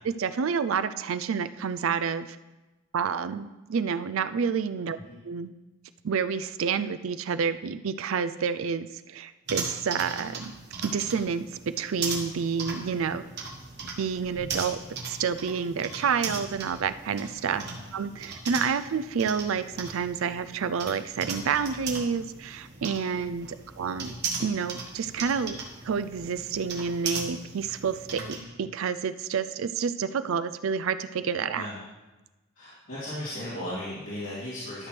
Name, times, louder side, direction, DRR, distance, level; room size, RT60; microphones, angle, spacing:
voice 1, 0.2-2.4 2.9-5.0 5.2-5.5 6.0-10.5 10.8-11.5 11.8-13.2 14.0-14.8 15.1-24.1 24.4-25.6 25.8-31.6, right 6 dB, 75° right, 12 dB, 0.4 m, -29 dB
sound 1, 9.5-28.4, right 4 dB, 55° right, 1.3 m, -38 dB
voice 2, 28.2-28.5 31.5-31.8 32.5-34.9, left 1 dB, 80° left, -11 dB, 2.9 m, -36 dB
12.5 x 6.0 x 3.3 m, 1.1 s
head